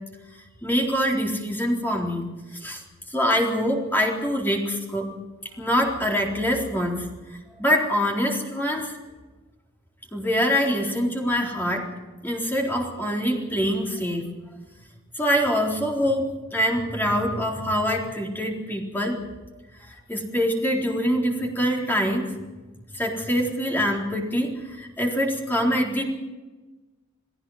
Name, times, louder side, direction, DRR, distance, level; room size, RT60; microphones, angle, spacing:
voice 1, 0.6-2.3 2.6-2.8 3.1-5.1 5.6-7.1 7.6-8.9 10.1-11.9 12.2-14.3 15.2-19.2 20.1-22.3 22.9-26.0, equal, 10° left, -1 dB, 4.0 m, -24 dB
29.0 x 17.5 x 5.8 m, 1.2 s
head